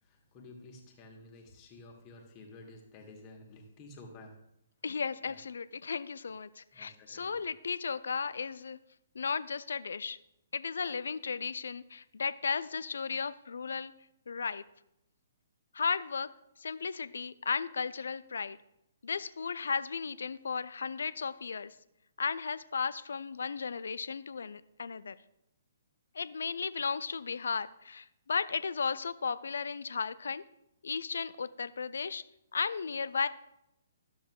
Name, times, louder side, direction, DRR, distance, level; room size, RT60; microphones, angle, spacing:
voice 1, 0.0-4.3 5.2-5.4 6.7-7.5, left 2 dB, 30° left, 2 dB, 1.5 m, -52 dB
voice 2, 4.8-8.8 9.2-10.2 10.5-13.9 14.3-14.6 15.7-16.3 16.6-18.6 19.0-21.7 22.2-25.1 26.2-30.4 30.8-32.2 32.5-33.3, left 5 dB, 65° left, 16 dB, 0.3 m, -35 dB
12.0 x 7.0 x 2.3 m, 0.80 s
figure-of-eight pair, 125°, 0 cm